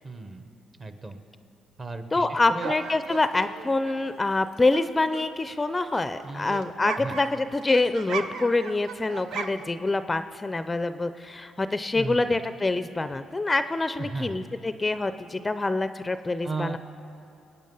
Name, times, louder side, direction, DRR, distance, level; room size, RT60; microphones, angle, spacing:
voice 1, 0.0-0.5 0.8-1.2 1.8-2.7 6.2-6.6 7.0-7.1 11.9-12.4 14.0-14.4 16.4-16.8, right 3 dB, 35° right, 8 dB, 1.1 m, -35 dB
voice 2, 2.1-16.8, left 2 dB, 20° left, 11 dB, 0.4 m, -26 dB
sound 1, 2.6-4.8 5.1-9.8, right 6 dB, 80° right, 0.7 m, -38 dB
22.0 x 9.1 x 5.5 m, 2.7 s
cardioid pair, 90°, 0 cm